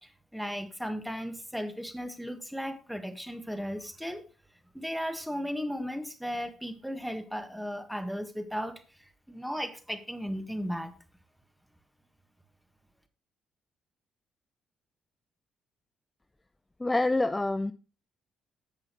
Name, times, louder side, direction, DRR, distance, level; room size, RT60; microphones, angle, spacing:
voice 1, 0.0-4.2 4.7-10.9, equal, ahead, 8 dB, 1.5 m, -36 dB
voice 2, 16.8-17.7, left 2 dB, 15° left, 11 dB, 0.5 m, -26 dB
10.5 x 7.7 x 3.0 m, 0.35 s
figure-of-eight pair, 45°, 0 cm